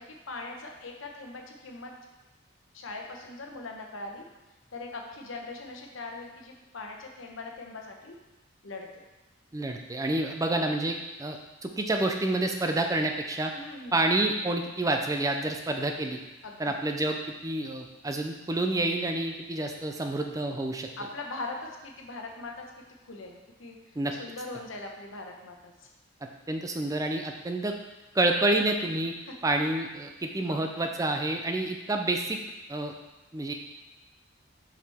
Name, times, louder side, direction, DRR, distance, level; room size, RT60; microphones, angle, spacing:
voice 1, 0.0-1.9 2.7-4.2 4.7-8.1 8.6-8.9 13.5-14.0 16.4-16.7 21.0-22.7 23.0-23.8 24.2-25.7 29.3-29.4 30.4-30.7, left 2 dB, 80° left, 2 dB, 1.0 m, -41 dB
voice 2, 9.5-13.5 13.9-16.2 16.6-20.9 24.0-24.1 26.5-27.7 28.1-29.1 29.4-32.4 32.7-32.9 33.3-33.5, right 2 dB, 15° right, 4 dB, 0.4 m, -28 dB
7.2 x 4.8 x 3.5 m, 1.1 s
head